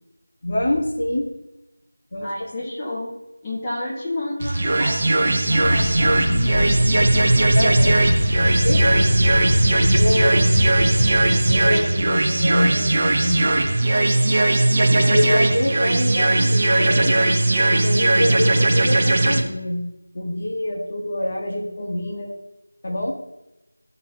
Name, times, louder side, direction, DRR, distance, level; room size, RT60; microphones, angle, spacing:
voice 1, 0.4-1.3 2.1-2.7 7.5-8.1 8.6-9.1 9.8-10.6 11.5-13.7 14.9-17.2 17.7-19.8 20.1-22.3 22.8-23.2, left 1 dB, 35° left, -1 dB, 1.7 m, -25 dB
voice 2, 2.2-3.1 3.4-6.7, left 1 dB, 10° left, -7 dB, 1.7 m, -30 dB
sound 1, 4.4-19.4, right 2 dB, 30° right, 1.0 m, -19 dB
sound 2, 5.6-11.7, left 1 dB, 60° left, 1.6 m, -22 dB
14.5 x 5.7 x 3.0 m, 0.95 s
figure-of-eight pair, 170°, 0 cm